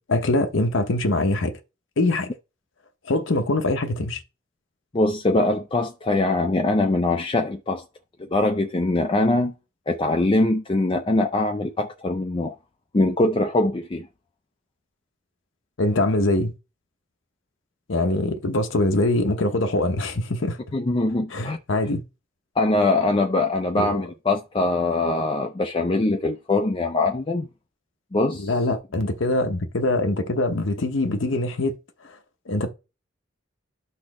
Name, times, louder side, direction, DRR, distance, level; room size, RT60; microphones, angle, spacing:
voice 1, 0.1-1.5 2.0-2.3 3.1-4.2 15.8-16.5 17.9-20.6 21.3-22.0 23.8-24.0 28.4-31.8 32.0-32.2 32.5-32.7, left 2 dB, 70° left, 0.8 m, -23 dB
voice 2, 4.9-7.8 8.2-9.5 9.9-12.5 12.9-14.1 20.7-21.6 22.6-27.5 28.1-28.5, left 2 dB, 25° left, 0.5 m, -22 dB
12.5 x 4.2 x 3.0 m
head